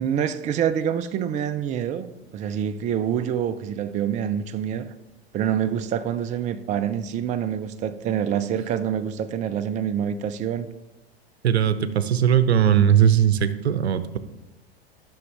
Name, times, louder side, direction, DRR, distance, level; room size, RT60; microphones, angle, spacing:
voice 1, 0.0-4.9 5.3-10.7, right 9 dB, 25° right, 0.4 m, -26 dB
voice 2, 11.4-14.2, right 9 dB, 80° right, 0.6 m, -19 dB
13.5 x 6.2 x 3.3 m
figure-of-eight pair, 90°, 31 cm